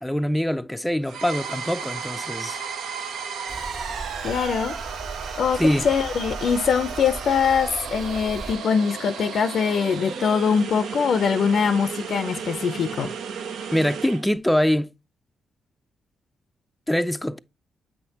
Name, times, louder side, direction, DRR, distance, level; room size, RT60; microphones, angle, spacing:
voice 1, 0.0-2.6 5.6-5.9 13.7-14.9 16.9-17.4, equal, 5° left, 0.4 m, -23 dB
sound 1, 1.0-14.2, right 6 dB, 70° right, 0.6 m, -34 dB
sound 2, 3.5-8.6, right 2 dB, 45° right, 1.3 m, -38 dB
voice 2, 4.2-4.8 5.3-13.1, left 6 dB, 65° left, 0.5 m, -23 dB
7.6 x 5.8 x 2.8 m
hypercardioid pair, 40°, 0 cm